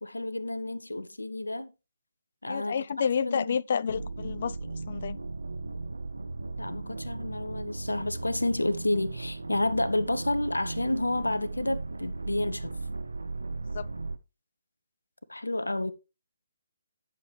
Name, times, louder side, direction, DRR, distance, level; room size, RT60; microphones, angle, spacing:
voice 1, 0.0-1.7 2.4-3.6 6.6-12.7 15.3-15.9, left 2 dB, 75° left, 1.0 m, -30 dB
voice 2, 2.5-4.6 4.9-5.2 13.7-13.9, left 7 dB, 45° left, 0.4 m, -29 dB
sound 1, 3.9-14.2, right 3 dB, 70° right, 0.7 m, -37 dB
11.0 x 6.9 x 3.3 m
figure-of-eight pair, 140°, 0 cm